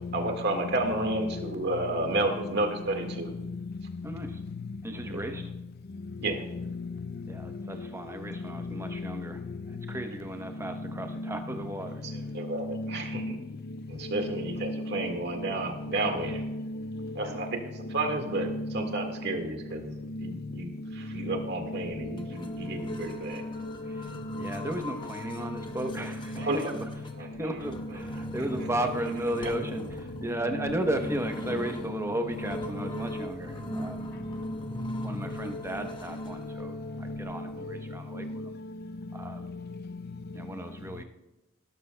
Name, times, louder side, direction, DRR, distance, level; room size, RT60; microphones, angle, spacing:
voice 1, 0.1-3.3 5.1-5.2 6.2-6.4 12.3-13.2 13.9-16.4 17.1-17.6 17.9-19.9 20.2-23.4 26.4-26.6 27.2-27.3, right 2 dB, 55° right, 1.7 m, -31 dB
voice 2, 4.0-4.4 4.8-5.4 7.3-9.4 9.7-12.0 17.2-17.4 23.8-24.1 24.4-26.7 27.2-34.1 35.0-38.6 39.1-39.5 40.3-41.0, right 1 dB, 15° right, 0.8 m, -35 dB
voice 3, 12.5-13.4 14.1-15.5 15.8-16.0 16.2-17.1 18.0-19.1 20.1-20.3 21.2-22.2 23.9-24.8 25.9-26.5 27.7-27.9 28.5-29.0 29.7-29.8 30.5-30.9 31.5-31.6 31.9-32.1 32.4-33.0 34.0-34.1 34.8-35.1 35.8-35.9 36.6-36.7 37.1-37.2 37.6-37.8 38.1-38.5, left 1 dB, 50° left, 0.5 m, -36 dB
sound 1, 21.8-37.6, left 1 dB, 25° left, 0.9 m, -41 dB
17.0 x 12.5 x 2.2 m
head